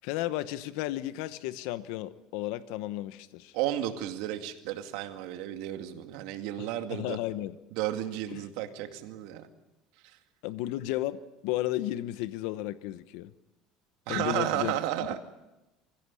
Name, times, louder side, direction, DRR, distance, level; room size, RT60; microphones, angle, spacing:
voice 1, 0.0-3.5 6.6-7.6 8.3-8.4 10.4-13.3 14.1-14.7, left 15 dB, 80° left, 14 dB, 0.9 m, -33 dB
voice 2, 3.5-7.2 7.8-9.4 10.0-10.2 14.1-15.2, right 12 dB, 80° right, 6 dB, 2.2 m, -33 dB
24.5 x 16.0 x 9.8 m, 1.0 s
cardioid pair, 140°, 0 cm